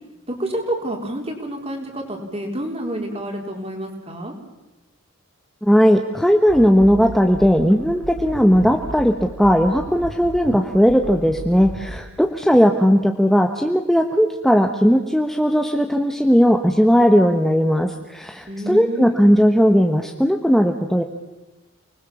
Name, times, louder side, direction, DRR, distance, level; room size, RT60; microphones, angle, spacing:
voice 1, 0.3-4.3 18.5-19.3, right 1 dB, 30° right, 2 dB, 4.3 m, -28 dB
voice 2, 5.6-21.0, equal, ahead, 4 dB, 1.2 m, -17 dB
sound 1, 6.5-12.1, right 1 dB, 80° right, 1.7 m, -35 dB
29.0 x 20.5 x 7.3 m, 1.0 s
head